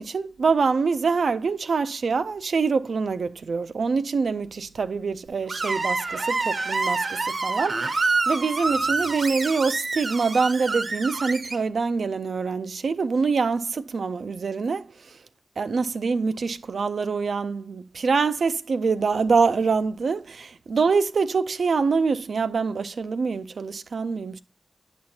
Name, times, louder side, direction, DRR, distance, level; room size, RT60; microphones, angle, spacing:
voice 1, 0.0-15.1 15.6-24.4, right 4 dB, 85° right, 0.4 m, -25 dB
Screech, 5.5-11.6, right 3 dB, 65° right, 0.8 m, -27 dB
9.5 x 6.1 x 2.7 m
wide cardioid pair, 85°, 0 cm